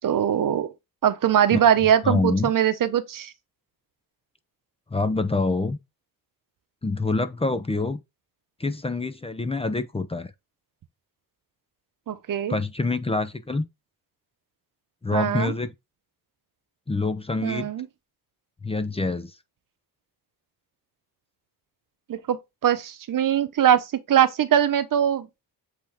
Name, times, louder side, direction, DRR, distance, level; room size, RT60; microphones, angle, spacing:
voice 1, 0.0-0.7 1.0-3.3 12.1-12.5 15.1-15.5 17.4-17.9 22.1-22.4 22.6-25.3, right 9 dB, 60° right, 0.9 m, -21 dB
voice 2, 2.0-2.5 4.9-5.8 6.8-8.0 8.6-10.3 12.5-13.7 15.0-15.7 16.9-17.7 18.6-19.4, left 3 dB, 15° left, 0.6 m, -26 dB
8.0 x 3.7 x 3.5 m
wide cardioid pair, 135°, 37 cm